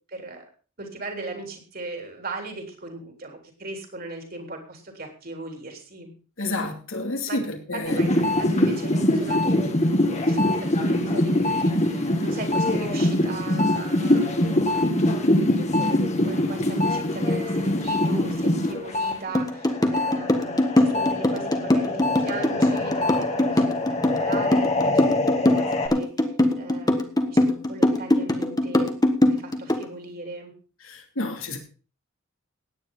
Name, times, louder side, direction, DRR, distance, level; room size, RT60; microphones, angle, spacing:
voice 1, 0.1-0.5 0.8-6.1 7.3-7.4 7.9-8.1 8.4-9.6 10.3-14.8 15.7-25.3 25.5-28.9 29.3-30.5, right 2 dB, 45° right, 3 dB, 3.8 m, -38 dB
voice 2, 6.4-8.2 30.8-31.6, left 2 dB, 75° left, 4 dB, 2.7 m, -30 dB
sound 1, 7.9-19.1 19.5-25.9, left 1 dB, 35° left, 1.9 m, -23 dB
sound 2, 19.3-29.9, left 1 dB, 20° left, 1.4 m, -21 dB
16.5 x 10.0 x 3.9 m, 0.37 s
head